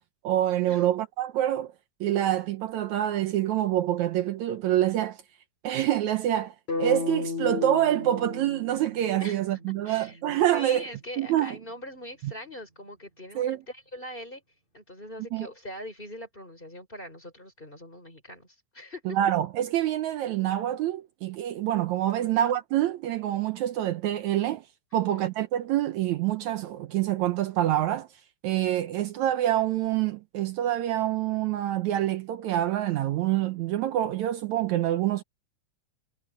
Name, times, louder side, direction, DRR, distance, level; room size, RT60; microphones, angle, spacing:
voice 1, 0.2-1.7 2.0-5.2 5.6-10.8 11.2-11.6 12.2-12.3 13.4-13.6 15.3-15.5 19.1-24.7 24.9-28.1 28.4-35.2, right 12 dB, 75° right, 2.1 m, -26 dB
sound 1, 6.7-10.7, left 4 dB, 70° left, 7.8 m, -34 dB
voice 2, 9.8-10.2 10.5-14.4 14.7-19.2 22.1-22.4 24.9-25.3, left 1 dB, 15° left, 4.7 m, -42 dB
omnidirectional pair, 3.5 m